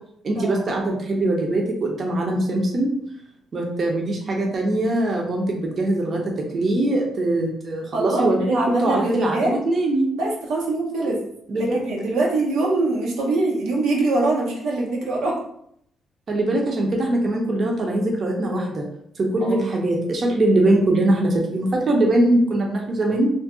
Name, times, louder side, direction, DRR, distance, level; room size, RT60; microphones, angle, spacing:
voice 1, 0.2-2.9 3.5-6.2 6.5-10.1 11.0-11.1 11.5-11.8 16.3-18.8 19.2-23.3, right 1 dB, 45° right, 0 dB, 0.6 m, -22 dB
voice 2, 7.9-9.5 10.2-11.2 11.5-15.4 19.4-19.7, right 2 dB, 90° right, -3 dB, 0.7 m, -23 dB
2.5 x 2.2 x 3.6 m, 0.70 s
cardioid pair, 90°, 0 cm